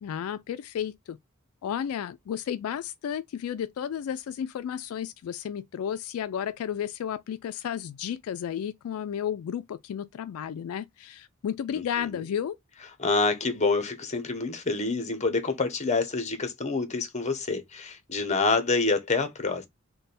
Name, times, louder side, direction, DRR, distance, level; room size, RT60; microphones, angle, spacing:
voice 1, 0.0-1.2 1.6-12.6, left 9 dB, 80° left, 0.3 m, -33 dB
voice 2, 13.0-19.7, left 3 dB, 35° left, 0.8 m, -27 dB
3.3 x 2.2 x 4.1 m
head